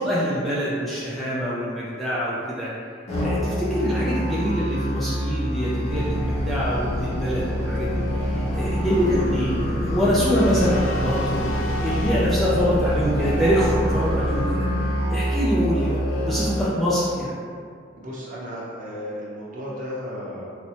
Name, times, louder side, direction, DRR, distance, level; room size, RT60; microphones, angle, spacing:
voice 1, 0.0-2.7 3.2-11.5 11.8-14.7 15.1-17.3, equal, ahead, -9 dB, 0.4 m, -24 dB
Musical instrument, 3.1-16.6, equal, 35° left, 0.8 m, -26 dB
sound 1, 5.9-14.5, left 1 dB, 80° left, 0.4 m, -31 dB
voice 2, 18.0-20.5, equal, 40° right, -6 dB, 0.7 m, -34 dB
4.1 x 2.1 x 2.8 m, 2.3 s
head